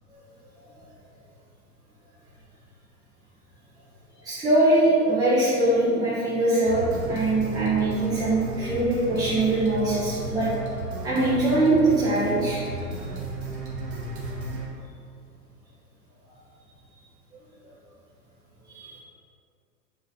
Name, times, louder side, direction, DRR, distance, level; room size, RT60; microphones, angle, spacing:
voice 1, 4.2-10.5 11.0-12.9 18.7-18.9, right 2 dB, 10° right, -10 dB, 1.4 m, -22 dB
sound 1, 6.7-14.7, right 2 dB, 35° right, 1.6 m, -34 dB
7.9 x 3.9 x 4.4 m, 2.3 s
figure-of-eight pair, 110°, 47 cm